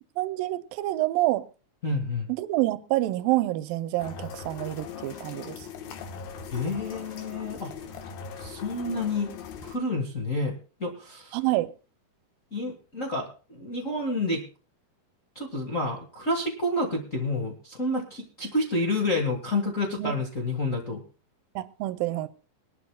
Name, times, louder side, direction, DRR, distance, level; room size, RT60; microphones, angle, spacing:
voice 1, 0.2-1.4 2.4-5.7 11.3-11.7 20.0-20.1 21.6-22.3, right 17 dB, 80° right, 2.3 m, -27 dB
voice 2, 1.8-2.3 6.5-7.7 8.4-9.3 9.6-10.5 10.8-11.4 12.5-14.4 15.3-21.0, left 2 dB, 50° left, 0.9 m, -29 dB
sound 1, 4.0-9.8, left 7 dB, 75° left, 3.0 m, -40 dB
23.0 x 11.5 x 2.2 m
omnidirectional pair, 4.3 m